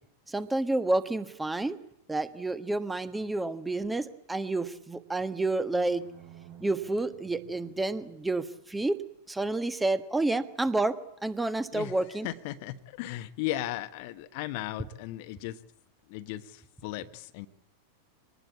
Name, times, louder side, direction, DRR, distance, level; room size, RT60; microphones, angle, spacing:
voice 1, 0.3-1.8 2.1-6.0 6.6-9.0 9.3-11.0 11.2-12.3, right 2 dB, 10° right, 11 dB, 1.4 m, -29 dB
sound 1, 5.5-8.5, right 10 dB, 50° right, 4.1 m, -52 dB
voice 2, 11.7-15.6 16.1-17.5, left 14 dB, 45° left, 11 dB, 1.3 m, -36 dB
24.5 x 19.5 x 8.5 m, 0.76 s
figure-of-eight pair, 90°, 0 cm